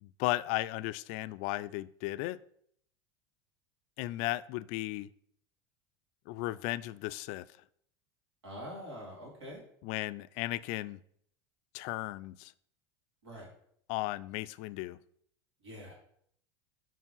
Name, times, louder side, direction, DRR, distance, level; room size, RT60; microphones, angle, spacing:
voice 1, 0.0-2.4 4.0-5.1 6.3-7.4 9.8-11.0 11.7-12.5 13.9-15.0, left 17 dB, 60° left, 0.4 m, -35 dB
voice 2, 8.4-9.6 13.2-13.5 15.6-16.0, equal, 85° right, 3.0 m, -44 dB
5.7 x 4.7 x 5.4 m
hypercardioid pair, 90°, 14 cm